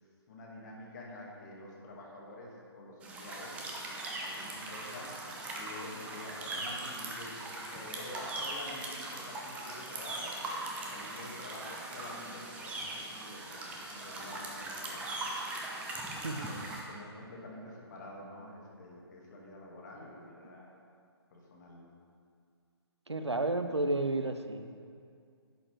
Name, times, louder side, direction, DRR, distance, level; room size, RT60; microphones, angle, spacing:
voice 1, 0.3-3.6 4.2-5.2 5.5-10.4 10.8-13.5 13.9-15.1 16.4-20.7 21.3-21.8, left 1 dB, 40° left, -3 dB, 2.0 m, -48 dB
sound 1, 3.0-16.8, right 2 dB, 10° right, 0.7 m, -40 dB
voice 2, 23.1-24.7, right 2 dB, 85° right, 8 dB, 0.7 m, -32 dB
11.0 x 7.9 x 3.3 m, 2.3 s
figure-of-eight pair, 135°, 14 cm